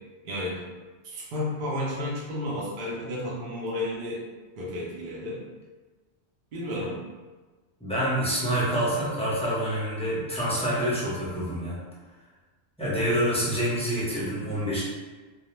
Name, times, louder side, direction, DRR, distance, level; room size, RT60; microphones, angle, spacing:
voice 1, 0.2-0.6 1.0-4.2 4.6-5.4 6.5-7.0, left 1 dB, 50° right, -5 dB, 0.7 m, -32 dB
voice 2, 7.8-11.8 12.8-14.8, equal, 10° left, -9 dB, 0.5 m, -27 dB
2.3 x 2.1 x 3.0 m, 1.3 s
omnidirectional pair, 1.2 m